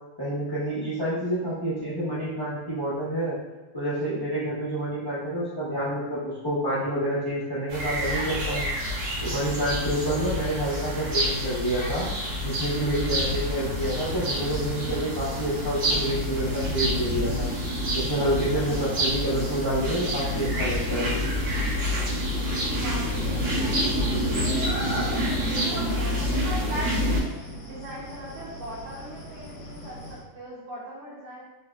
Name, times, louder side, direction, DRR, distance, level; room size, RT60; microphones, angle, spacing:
voice 1, 0.2-3.3 3.7-8.7 9.2-12.1 12.4-17.5 17.9-21.2, right 1 dB, 35° left, -10 dB, 0.3 m, -28 dB
sound 1, 7.7-27.2, equal, 65° right, 1.8 m, -28 dB
sound 2, 13.3-30.2, left 1 dB, 70° left, 0.8 m, -42 dB
voice 2, 22.8-27.3 27.6-31.4, right 1 dB, 85° right, -5 dB, 1.8 m, -42 dB
4.2 x 3.1 x 2.3 m, 1.1 s
omnidirectional pair, 2.4 m